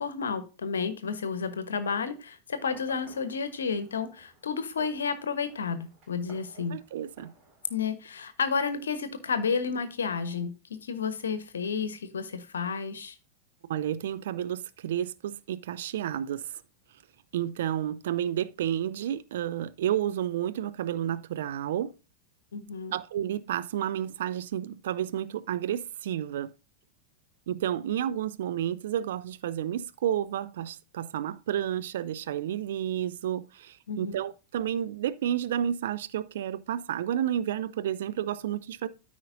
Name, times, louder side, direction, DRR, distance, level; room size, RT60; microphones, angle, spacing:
voice 1, 0.0-6.8 7.7-10.5 10.8-13.1 22.5-22.9 33.9-34.1, left 5 dB, 70° left, 1.0 m, -31 dB
Fireworks, 2.5-7.8, right 2 dB, 35° right, 4.4 m, -56 dB
voice 2, 6.7-7.3 13.7-16.6 17.3-21.9 22.9-26.5 27.5-38.9, right 10 dB, 60° right, 0.4 m, -31 dB
13.0 x 5.1 x 2.6 m
figure-of-eight pair, 90°, 0 cm